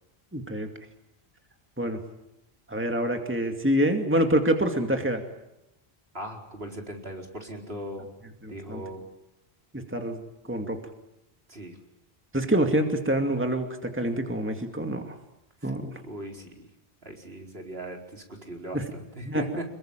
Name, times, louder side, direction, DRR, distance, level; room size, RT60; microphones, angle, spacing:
voice 1, 0.3-0.7 1.8-2.0 2.7-5.2 8.4-8.8 9.7-10.2 10.5-10.8 12.3-15.2 15.6-15.9 18.7-18.9 19.2-19.4, right 1 dB, 10° right, 4 dB, 2.4 m, -26 dB
voice 2, 6.1-8.1 8.5-9.0 11.5-11.8 15.6-15.7 16.0-16.6 17.0-19.6, right 1 dB, 70° right, 2 dB, 4.9 m, -39 dB
28.0 x 22.0 x 9.1 m, 0.86 s
omnidirectional pair, 1.1 m